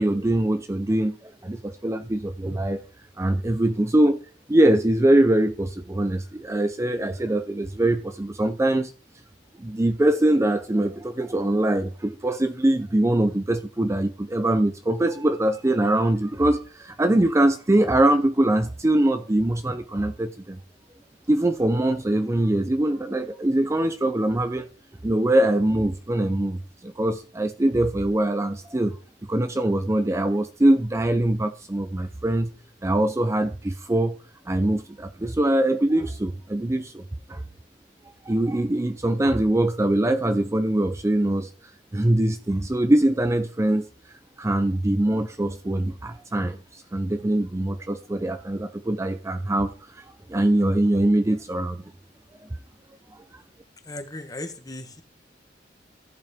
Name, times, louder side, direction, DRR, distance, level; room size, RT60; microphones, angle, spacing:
voice 1, 0.0-2.8 3.2-4.2 4.5-8.9 9.6-20.6 21.3-24.7 25.0-29.0 29.3-32.5 32.8-34.2 34.5-37.0 37.3-37.4 38.3-41.5 41.9-43.9 44.4-51.8 53.1-53.4, right 1 dB, 15° right, 0.5 m, -23 dB
voice 2, 53.8-55.0, left 2 dB, 20° left, 1.3 m, -36 dB
14.5 x 8.3 x 3.6 m
head